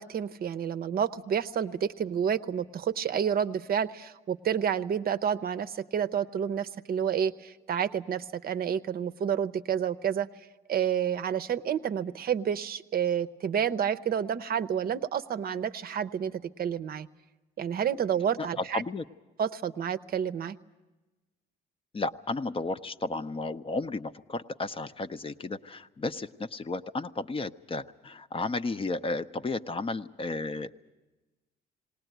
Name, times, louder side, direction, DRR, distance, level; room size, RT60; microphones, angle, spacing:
voice 1, 0.0-10.3 10.7-17.1 17.6-18.8 19.4-20.6, right 8 dB, 50° right, 11 dB, 0.6 m, -29 dB
voice 2, 18.7-19.0 21.9-30.7, left 3 dB, 30° left, 10 dB, 0.6 m, -33 dB
19.0 x 18.5 x 9.1 m, 1.1 s
cardioid pair, 85°, 20 cm